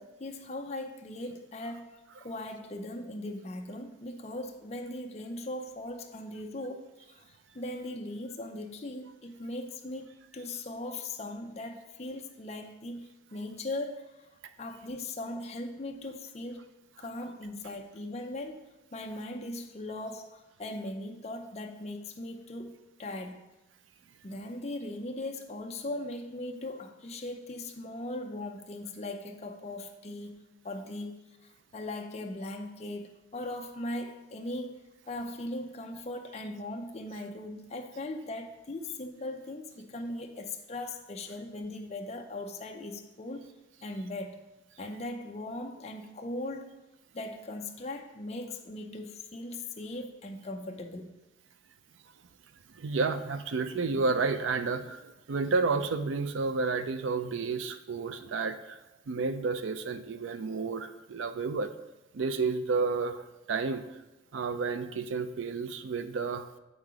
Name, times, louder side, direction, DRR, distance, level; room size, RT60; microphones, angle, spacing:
voice 1, 0.0-14.3 14.6-16.7 17.0-23.4 24.2-34.8 35.1-43.5 43.8-44.4 44.8-46.7 47.1-51.1 58.0-58.1, left 1 dB, 35° left, 2 dB, 0.5 m, -39 dB
voice 2, 52.7-58.8 59.1-61.7 62.1-63.9 64.3-66.5, right 4 dB, 80° right, 10 dB, 0.5 m, -31 dB
8.1 x 3.7 x 4.9 m, 1.0 s
head